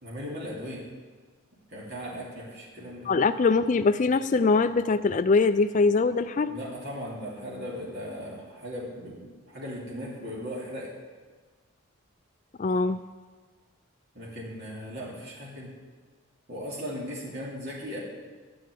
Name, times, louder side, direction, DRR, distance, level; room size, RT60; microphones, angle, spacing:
voice 1, 0.0-0.9 1.7-3.1 6.5-10.9 14.1-15.7 16.5-18.0, equal, 50° right, -5 dB, 2.8 m, -37 dB
voice 2, 3.1-6.5 12.6-13.0, left 4 dB, 35° left, 11 dB, 0.3 m, -22 dB
12.0 x 7.9 x 8.5 m, 1.4 s
head